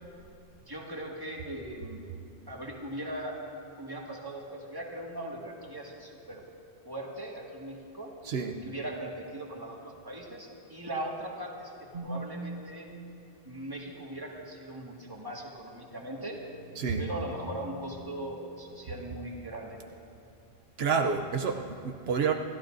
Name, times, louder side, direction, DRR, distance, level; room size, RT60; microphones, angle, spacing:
voice 1, 0.7-2.1 2.5-3.4 3.8-6.4 6.8-8.1 8.6-12.9 13.4-16.4 17.0-19.8, right 1 dB, 20° right, -2 dB, 1.9 m, -39 dB
sound 1, 11.9-12.5 15.4-18.9, right 2 dB, 50° right, 2.4 m, -44 dB
voice 2, 20.8-22.3, right 6 dB, 75° right, 4 dB, 1.0 m, -28 dB
27.0 x 15.0 x 2.6 m, 2.5 s
omnidirectional pair, 1.0 m